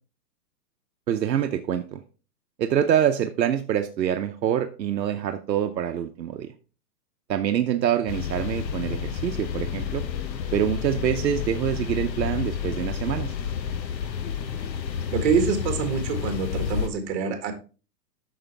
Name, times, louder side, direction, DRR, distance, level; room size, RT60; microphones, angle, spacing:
voice 1, 1.1-2.0 2.6-6.5 7.3-10.0 10.5-13.3, right 10 dB, 80° right, 6 dB, 0.9 m, -25 dB
sound 1, 8.1-16.9, left 8 dB, 85° left, 1.2 m, -30 dB
voice 2, 15.1-17.5, right 6 dB, 45° right, 6 dB, 2.0 m, -25 dB
8.7 x 6.4 x 3.4 m, 0.35 s
hypercardioid pair, 135°, 49 cm